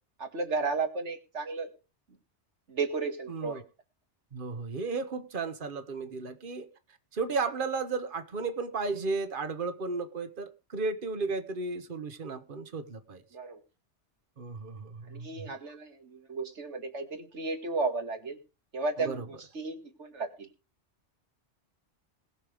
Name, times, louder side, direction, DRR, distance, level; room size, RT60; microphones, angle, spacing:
voice 1, 0.2-1.7 2.7-3.6 13.3-13.6 15.1-18.4 18.7-20.5, right 3 dB, 75° right, 6 dB, 2.3 m, -34 dB
voice 2, 3.3-3.6 4.3-6.7 7.1-13.2 14.4-15.5 19.0-19.2, right 4 dB, 45° right, 9 dB, 1.5 m, -34 dB
20.0 x 6.7 x 5.2 m, 0.32 s
omnidirectional pair, 1.2 m